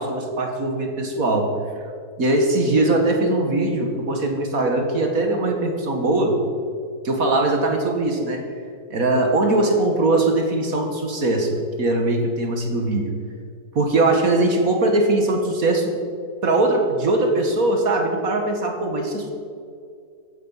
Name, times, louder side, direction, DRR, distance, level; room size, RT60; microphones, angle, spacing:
voice 1, 0.0-1.5 2.2-6.4 7.0-8.4 8.9-13.1 13.8-16.0 16.4-19.3, right 2 dB, 55° right, 3 dB, 2.1 m, -21 dB
15.0 x 10.5 x 5.7 m, 2.3 s
omnidirectional pair, 1.9 m